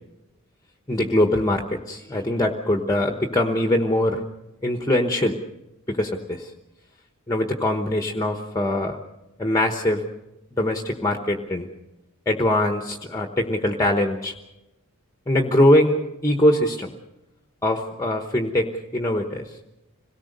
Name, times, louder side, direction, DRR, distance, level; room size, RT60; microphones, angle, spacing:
voice 1, 0.9-4.2 4.6-5.4 5.9-6.5 7.3-9.0 9.4-10.0 10.5-11.7 12.3-14.4 15.3-16.9 17.6-19.6, left 1 dB, 15° left, 4 dB, 1.1 m, -22 dB
26.0 x 18.0 x 6.6 m, 0.95 s
head